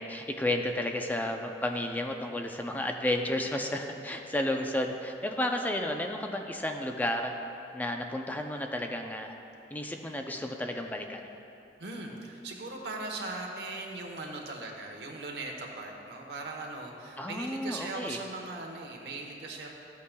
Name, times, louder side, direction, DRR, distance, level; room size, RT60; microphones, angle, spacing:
voice 1, 0.0-7.3 7.7-9.3 9.7-11.3 17.2-18.2, left 1 dB, 10° left, 3 dB, 0.4 m, -32 dB
voice 2, 11.8-19.7, right 2 dB, 70° right, 1 dB, 1.0 m, -39 dB
13.0 x 8.3 x 2.2 m, 3.0 s
head